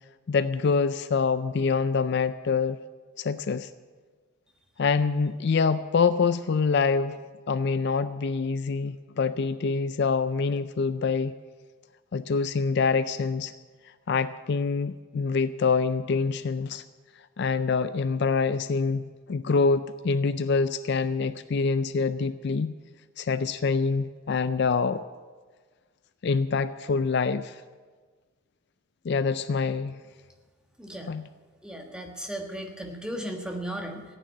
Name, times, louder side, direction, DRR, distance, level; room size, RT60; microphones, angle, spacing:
voice 1, 0.3-2.8 3.2-3.7 4.8-7.2 7.5-11.3 12.1-13.5 14.1-16.8 17.4-22.7 23.2-25.0 26.2-27.6 29.0-30.0 31.1-31.3, left 5 dB, 50° left, 13 dB, 0.4 m, -25 dB
voice 2, 30.8-31.1 31.6-34.0, right 1 dB, 5° right, 2 dB, 1.4 m, -36 dB
15.5 x 9.2 x 8.4 m, 1.5 s
head